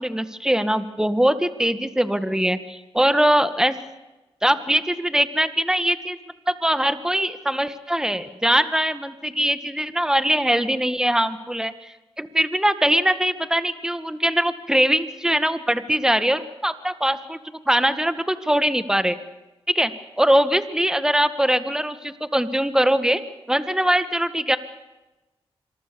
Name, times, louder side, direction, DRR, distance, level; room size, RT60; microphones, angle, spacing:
voice 1, 0.0-3.8 4.4-6.2 6.5-17.4 17.7-19.2 19.7-23.2 23.5-24.6, right 1 dB, 5° right, 11 dB, 1.9 m, -22 dB
26.5 x 23.0 x 7.1 m, 1.1 s
cardioid pair, 75°, 10 cm